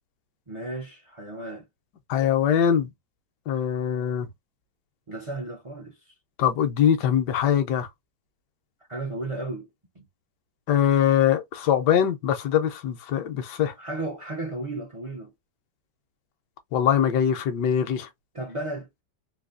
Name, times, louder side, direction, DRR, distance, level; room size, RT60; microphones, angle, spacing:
voice 1, 0.5-1.7 5.1-6.2 8.9-9.7 9.9-10.1 13.8-15.3 18.3-18.9, right 2 dB, 55° right, 0.3 m, -34 dB
voice 2, 2.1-2.9 3.5-4.3 6.4-7.9 10.7-13.7 16.7-18.1, left 9 dB, 80° left, 1.3 m, -22 dB
4.0 x 2.6 x 2.5 m
omnidirectional pair, 1.8 m